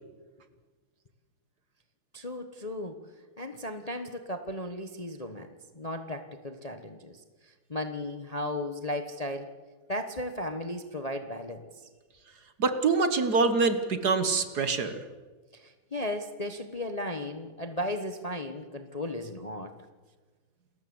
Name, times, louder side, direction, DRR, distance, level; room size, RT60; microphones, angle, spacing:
voice 1, 2.1-3.0 3.4-7.2 7.7-9.5 9.9-11.6 15.5-19.7, left 1 dB, 25° left, 7 dB, 1.0 m, -35 dB
voice 2, 12.6-15.0, right 4 dB, 50° right, 10 dB, 1.7 m, -25 dB
29.0 x 14.0 x 8.0 m, 1.4 s
omnidirectional pair, 2.3 m